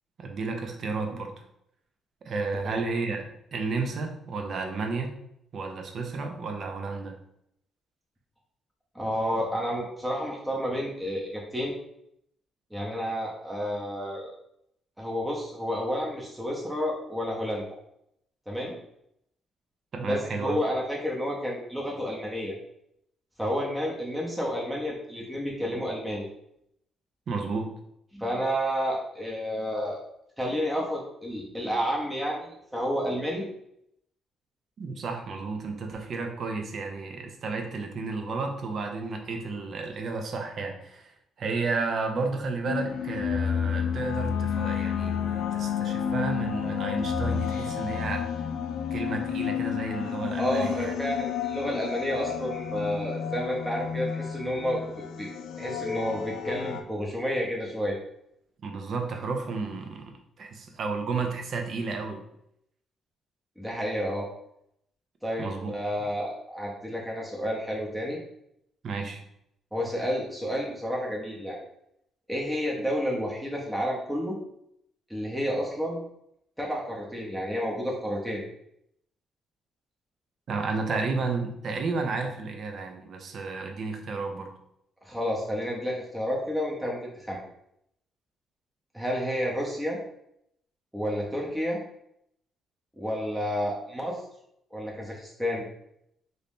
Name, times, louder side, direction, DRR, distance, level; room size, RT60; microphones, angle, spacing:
voice 1, 0.2-1.3 2.2-3.2 3.5-5.1 5.5-7.1 19.9-20.6 27.3-27.7 34.8-41.1 41.4-48.3 48.9-50.9 58.6-62.2 65.4-65.7 68.8-69.2 80.5-84.5, right 4 dB, 55° right, 4 dB, 0.6 m, -32 dB
voice 2, 8.9-11.7 12.7-14.3 15.0-17.6 18.5-18.7 20.0-22.5 23.4-26.3 28.1-30.0 30.4-33.5 50.4-55.3 55.6-58.0 63.6-64.3 65.2-68.2 69.7-71.6 72.3-74.4 75.1-76.0 76.6-78.4 85.0-87.4 88.9-90.0 90.9-91.8 93.0-94.2 94.7-95.7, equal, 5° right, -3 dB, 0.7 m, -30 dB
sound 1, 42.7-56.8, left 8 dB, 80° left, 0.4 m, -31 dB
2.8 x 2.6 x 3.5 m, 0.76 s
cardioid pair, 90°, 0 cm